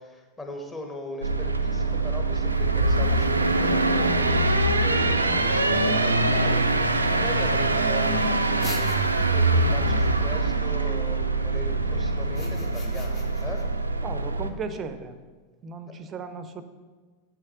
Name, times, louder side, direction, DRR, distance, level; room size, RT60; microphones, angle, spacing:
voice 1, 0.0-6.6 7.1-8.8 9.2-13.6, left 2 dB, 15° left, 2 dB, 1.3 m, -39 dB
sound 1, 1.2-14.5, right 2 dB, 80° right, 0.5 m, -23 dB
sound 2, 8.6-9.4 12.2-13.6, left 4 dB, 30° left, 1.2 m, -41 dB
voice 2, 14.0-15.2 15.6-16.6, right 4 dB, 25° right, 10 dB, 0.7 m, -36 dB
7.9 x 6.5 x 5.7 m, 1.4 s
figure-of-eight pair, 90°, 0 cm